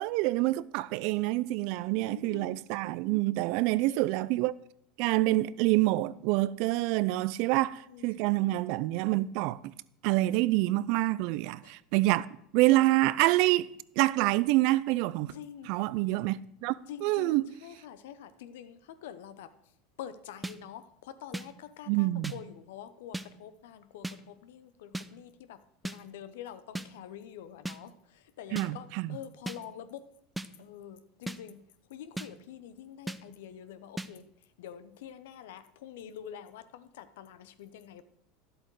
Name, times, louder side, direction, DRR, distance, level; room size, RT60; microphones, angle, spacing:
voice 1, 0.0-4.5 5.0-9.7 10.0-12.3 12.5-13.7 14.0-15.3 15.7-16.8 17.0-17.5 21.9-22.3 28.5-29.2, right 18 dB, 65° right, 0.4 m, -27 dB
voice 2, 2.1-2.6 3.9-4.1 7.9-8.4 11.6-11.7 15.3-15.7 16.9-19.5 20.0-30.1 30.6-34.3 34.6-38.0, left 9 dB, 80° left, 0.7 m, -46 dB
sound 1, 20.4-20.6 21.3-21.5 22.2-22.4 23.1-23.3 24.0-24.2 24.9-25.1 25.8-26.0 26.7-26.9 27.6-27.8 28.6-28.7 29.5-29.6 30.4-30.5 31.3-31.4 32.2-32.3 33.1-33.2 34.0-34.1, right 1 dB, 5° right, 0.5 m, -36 dB
11.0 x 7.8 x 4.7 m
hypercardioid pair, 100°, 0 cm